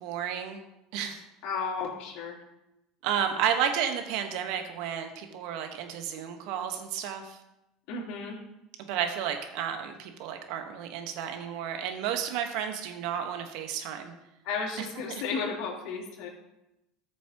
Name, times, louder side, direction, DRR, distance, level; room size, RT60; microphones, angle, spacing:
voice 1, 0.0-0.6 0.9-1.2 3.0-7.4 8.8-14.1 14.8-14.9, right 8 dB, 70° right, 6 dB, 1.3 m, -32 dB
voice 2, 1.4-2.4 7.9-8.4 14.4-16.3, left 5 dB, 65° left, -5 dB, 3.5 m, -33 dB
14.0 x 7.0 x 3.0 m, 0.90 s
hypercardioid pair, 85°, 0 cm